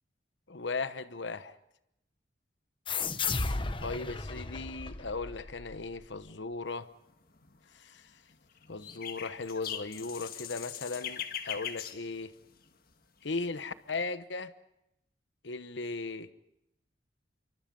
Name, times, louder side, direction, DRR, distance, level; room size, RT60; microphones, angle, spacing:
voice 1, 0.5-1.5 3.8-6.9 7.7-8.1 8.7-12.3 13.2-14.5 15.4-16.3, left 3 dB, 70° left, 1.0 m, -37 dB
sound 1, 2.9-6.1, left 4 dB, 25° left, 1.0 m, -34 dB
sound 2, 7.1-7.6 8.3-12.9 13.3-14.0, left 9 dB, 50° left, 1.7 m, -41 dB
28.0 x 24.0 x 5.4 m
head